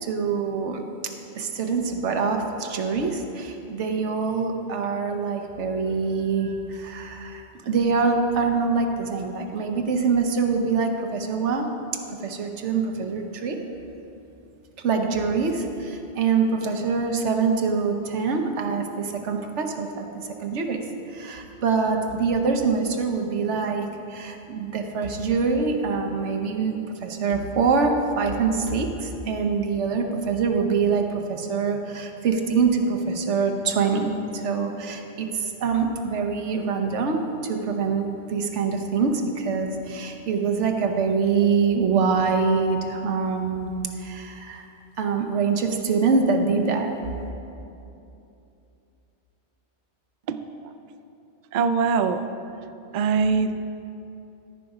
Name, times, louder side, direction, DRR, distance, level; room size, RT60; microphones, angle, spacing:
voice 1, 0.0-0.8 1.3-11.7 12.2-13.6 14.8-20.8 21.1-26.7 27.0-44.7 45.0-46.9, right 5 dB, 80° right, 4 dB, 1.1 m, -24 dB
voice 2, 50.3-50.7 51.5-52.3 52.9-53.5, right 5 dB, 55° right, 9 dB, 0.5 m, -23 dB
14.0 x 5.2 x 4.8 m, 2.8 s
omnidirectional pair, 1.2 m